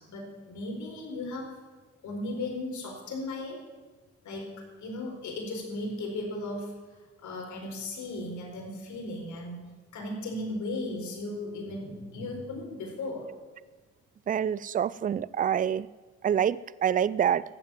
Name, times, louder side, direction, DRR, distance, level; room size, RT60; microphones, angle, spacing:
voice 1, 0.0-1.5 2.0-3.6 4.2-4.5 4.8-6.7 7.2-13.3, left 2 dB, 70° left, 0 dB, 4.4 m, -36 dB
voice 2, 14.3-15.9 16.2-17.4, right 9 dB, 30° right, 20 dB, 0.4 m, -26 dB
14.5 x 7.3 x 9.5 m, 1.3 s
cardioid pair, 90°, 30 cm